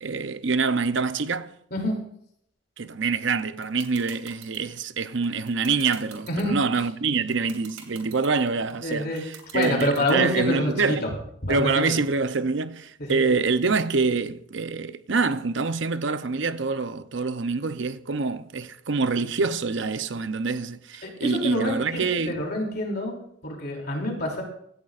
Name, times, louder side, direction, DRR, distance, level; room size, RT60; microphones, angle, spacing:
voice 1, 0.0-1.5 2.8-11.1 11.5-22.4, right 4 dB, 60° right, 0.7 m, -26 dB
sound 1, 3.4-10.4, right 7 dB, 85° right, 2.7 m, -43 dB
voice 2, 8.8-9.2 9.5-11.1 11.4-11.9 13.0-13.2 21.0-23.1 23.4-24.4, left 1 dB, 50° left, 3.0 m, -27 dB
16.5 x 13.5 x 2.5 m
head